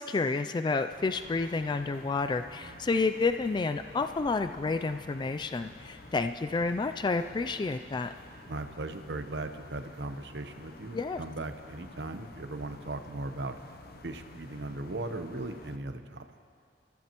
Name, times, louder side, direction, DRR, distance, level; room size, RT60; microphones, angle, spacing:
voice 1, 0.0-8.1 10.9-11.2, left 3 dB, 25° left, 9 dB, 0.3 m, -30 dB
sound 1, 0.9-15.8, left 2 dB, 60° left, 0.8 m, -51 dB
voice 2, 8.5-13.6 14.0-16.3, right 2 dB, 75° right, 7 dB, 0.9 m, -38 dB
27.0 x 14.5 x 3.0 m, 2.3 s
head